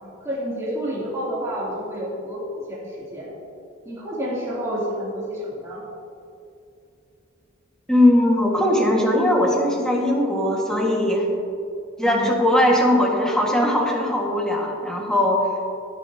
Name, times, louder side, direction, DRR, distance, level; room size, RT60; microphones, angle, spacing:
voice 1, 0.0-3.3 3.8-5.8 12.0-12.4, equal, 15° right, -9 dB, 3.3 m, -29 dB
voice 2, 7.9-11.3 12.0-15.4, left 1 dB, 5° left, -2 dB, 1.9 m, -19 dB
20.0 x 9.3 x 3.0 m, 2.5 s
head